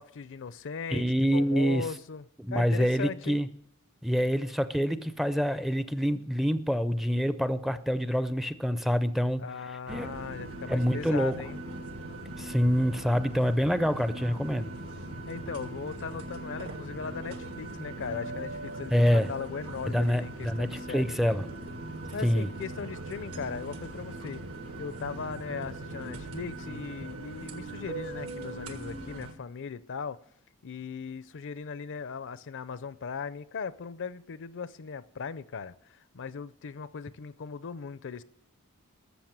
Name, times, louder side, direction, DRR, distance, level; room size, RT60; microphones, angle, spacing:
voice 1, 0.0-3.4 9.4-11.6 15.3-21.4 22.1-24.4 24.8-30.2 30.6-38.2, left 5 dB, 55° left, 0.5 m, -38 dB
voice 2, 0.9-1.9 2.4-3.5 4.0-9.5 9.9-10.1 10.7-11.4 12.4-14.7 18.9-19.3 19.9-21.5 22.2-22.5, equal, ahead, 0.4 m, -26 dB
sound 1, 9.9-29.3, right 2 dB, 75° right, 1.6 m, -40 dB
13.5 x 7.0 x 9.4 m
head